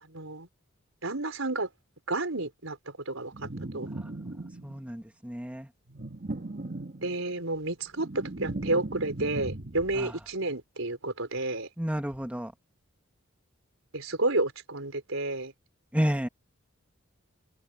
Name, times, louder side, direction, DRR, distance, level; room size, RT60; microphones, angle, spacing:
voice 1, 0.0-0.5 1.0-1.7 2.1-3.5 3.7-3.9 7.0-11.7 13.9-15.5, right 2 dB, 70° right, 5.1 m, -31 dB
sound 1, 3.3-4.9 5.9-7.4 7.7-10.1, right 2 dB, 45° right, 1.6 m, -38 dB
voice 2, 4.6-5.7 10.0-10.1 11.8-12.5 15.9-16.3, equal, 5° right, 1.7 m, -30 dB
head